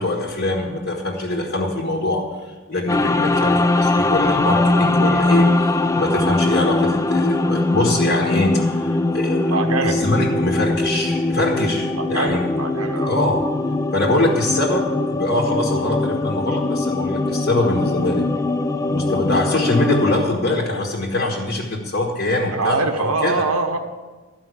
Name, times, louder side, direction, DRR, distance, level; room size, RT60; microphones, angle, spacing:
voice 1, 0.0-2.2 2.7-9.6 9.8-12.5 13.0-13.4 13.9-18.3 18.9-23.3, left 2 dB, 45° left, -1 dB, 1.5 m, -23 dB
sound 1, 2.9-20.2, left 2 dB, 15° left, 0.3 m, -21 dB
voice 2, 9.5-10.0 11.9-13.2 22.4-23.8, right 3 dB, 90° right, 3 dB, 1.1 m, -23 dB
12.5 x 5.6 x 8.3 m, 1.3 s
head